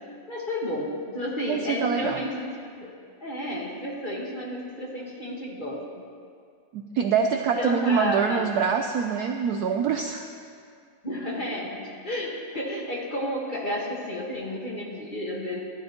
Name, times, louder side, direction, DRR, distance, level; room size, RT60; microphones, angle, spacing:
voice 1, 0.3-2.9 3.2-5.8 7.5-8.5 11.0-15.6, left 1 dB, 30° left, -4 dB, 1.4 m, -31 dB
voice 2, 1.5-2.2 6.7-10.3, right 6 dB, 75° right, 5 dB, 0.9 m, -25 dB
15.5 x 12.0 x 2.9 m, 2.2 s
omnidirectional pair, 2.1 m